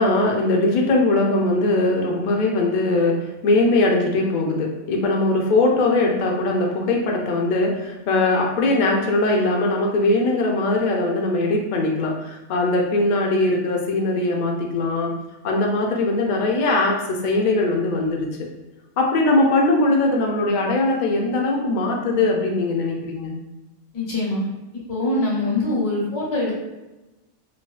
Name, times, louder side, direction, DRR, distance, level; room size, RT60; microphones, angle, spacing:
voice 1, 0.0-15.1 15.4-18.5 19.0-23.3, left 2 dB, 55° left, 0 dB, 0.5 m, -20 dB
voice 2, 23.9-24.4 24.9-26.5, left 2 dB, 85° left, -5 dB, 1.5 m, -23 dB
3.4 x 2.3 x 2.4 m, 1.0 s
omnidirectional pair, 1.2 m